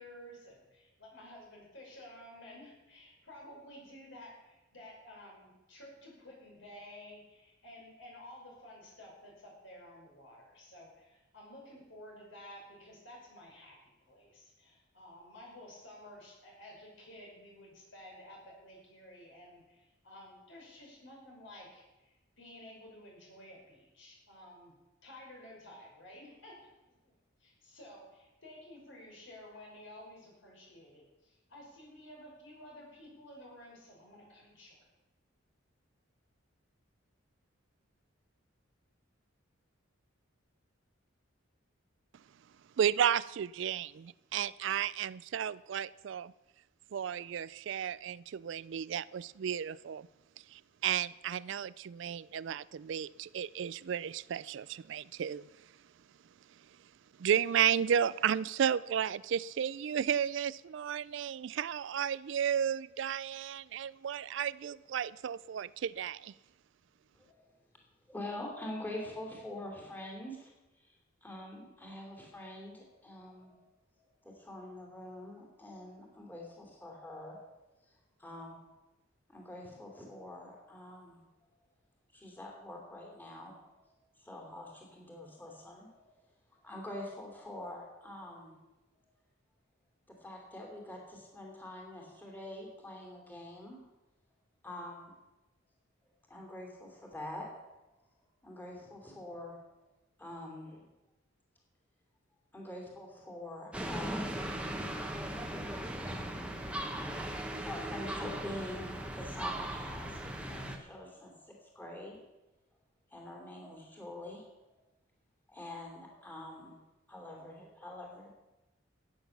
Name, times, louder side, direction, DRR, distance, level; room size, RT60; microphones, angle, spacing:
voice 1, 0.0-24.8 25.0-27.1 27.4-34.8, left 1 dB, 65° left, -2 dB, 6.0 m, -53 dB
voice 2, 42.8-46.3 46.9-50.1 50.5-55.5 57.2-66.3, right 8 dB, 60° right, 19 dB, 0.3 m, -33 dB
voice 3, 68.1-70.5 70.9-71.0 71.2-73.6 74.2-77.4 77.9-78.0 78.2-78.6 79.3-81.2 82.1-83.8 84.2-86.0 86.5-88.6 88.9-89.0 90.1-93.8 94.6-95.1 96.3-97.5 98.4-99.6 100.2-100.9 102.5-104.3 106.0-106.5 107.5-112.2 113.1-114.4 115.5-116.7 117.1-118.3, left 1 dB, 10° left, -1 dB, 2.9 m, -45 dB
sound 1, 103.7-110.8, right 1 dB, 5° right, 1.2 m, -38 dB
14.5 x 9.1 x 7.1 m, 1.0 s
head